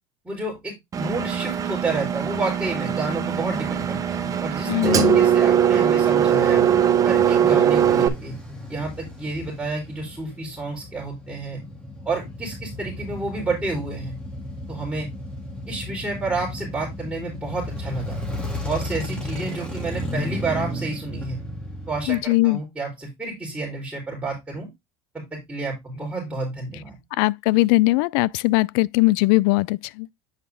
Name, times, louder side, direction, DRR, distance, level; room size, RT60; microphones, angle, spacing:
voice 1, 0.2-6.7 7.0-8.3 8.7-11.6 12.1-14.1 14.7-15.1 15.7-18.2 18.6-21.4 21.9-24.7 25.3-26.9, right 3 dB, 10° right, 3.8 m, -30 dB
Engine, 0.9-8.1, right 8 dB, 30° right, 0.9 m, -20 dB
voice 2, 4.7-5.2 22.1-22.6 27.2-30.1, left 21 dB, 75° left, 0.4 m, -20 dB
Male speech man speaking / Motorcycle / Idling, 6.4-22.2, left 1 dB, 5° left, 2.4 m, -34 dB
8.0 x 5.1 x 3.5 m
cardioid pair, 135°, 12 cm